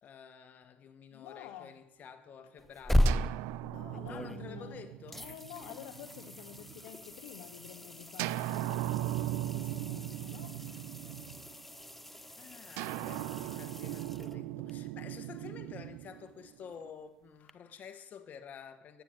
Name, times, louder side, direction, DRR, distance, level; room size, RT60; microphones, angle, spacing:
voice 1, 0.0-3.4 4.0-5.3 12.3-19.0, left 7 dB, 45° left, 1.4 m, -50 dB
voice 2, 1.1-1.8 3.6-4.8 5.2-8.9 9.3-10.6, left 11 dB, 80° left, 0.8 m, -49 dB
sound 1, 2.6-4.7 5.1-14.7 17.5-17.6, equal, 5° left, 0.5 m, -36 dB
sound 2, 3.0-6.8 8.2-11.7 12.8-16.9, right 15 dB, 80° right, 0.4 m, -38 dB
9.2 x 8.9 x 7.1 m
supercardioid pair, 90°, 4 cm